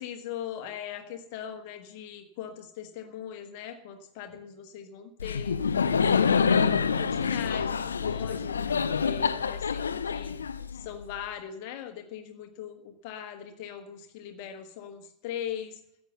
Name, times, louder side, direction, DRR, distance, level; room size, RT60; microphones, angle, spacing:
voice 1, 0.0-5.6 6.0-10.3 10.7-15.8, left 9 dB, 45° left, 6 dB, 1.4 m, -40 dB
Laughter, 5.2-11.0, left 6 dB, 70° left, 0.7 m, -26 dB
14.5 x 8.6 x 8.0 m, 0.79 s
figure-of-eight pair, 90°, 0 cm